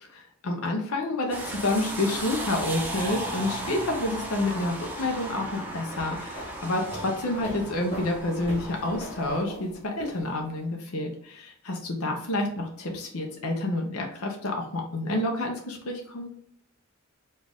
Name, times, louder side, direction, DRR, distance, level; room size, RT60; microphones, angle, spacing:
voice 1, 0.4-16.3, left 2 dB, 70° left, 1 dB, 0.7 m, -29 dB
sound 1, 1.3-9.4, right 1 dB, 10° right, 0.6 m, -36 dB
sound 2, 5.9-10.6, right 1 dB, 30° left, 1.2 m, -41 dB
4.3 x 2.4 x 3.5 m, 0.67 s
head